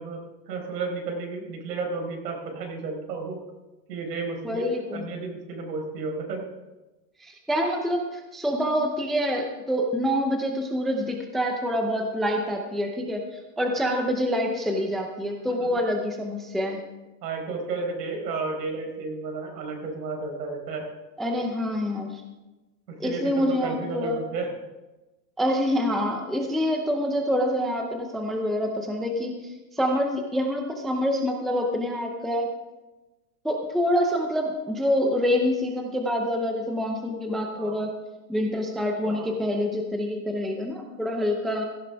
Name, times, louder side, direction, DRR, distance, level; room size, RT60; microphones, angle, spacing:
voice 1, 0.0-3.4 3.9-4.7 4.9-6.4 17.2-20.8 22.9-24.5 37.5-37.8 39.0-39.3, right 4 dB, 75° right, 2 dB, 4.6 m, -32 dB
voice 2, 4.4-5.0 7.2-16.8 21.2-22.2 23.0-24.2 25.4-32.5 33.4-38.0 38.3-41.7, equal, ahead, 2 dB, 0.5 m, -26 dB
16.5 x 13.5 x 3.5 m, 1.1 s
supercardioid pair, 150°, 49 cm